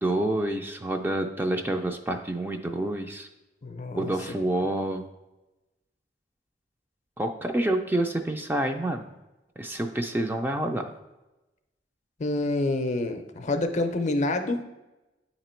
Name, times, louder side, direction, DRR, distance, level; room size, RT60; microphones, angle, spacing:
voice 1, 0.0-3.3 4.0-5.1 7.2-9.1 9.6-10.9, right 1 dB, 10° right, 4 dB, 0.3 m, -28 dB
voice 2, 3.6-4.1 12.2-14.6, left 2 dB, 45° left, 7 dB, 0.5 m, -27 dB
8.6 x 2.9 x 4.3 m, 1.0 s
head